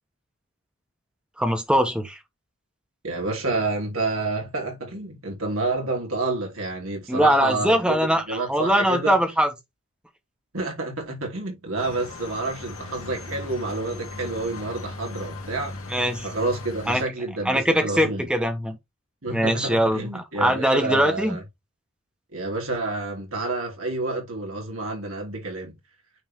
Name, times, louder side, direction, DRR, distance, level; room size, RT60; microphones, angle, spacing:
voice 1, 1.4-2.2 7.1-9.5 15.9-16.3 16.9-17.0 17.4-18.8 19.3-21.4, equal, 5° right, 1.2 m, -22 dB
voice 2, 3.0-9.2 10.5-15.8 16.2-18.3 19.2-21.4 22.3-25.7, right 2 dB, 75° right, 3.2 m, -29 dB
sound 1, 11.8-17.0, left 2 dB, 85° left, 2.4 m, -38 dB
9.2 x 3.6 x 3.6 m
head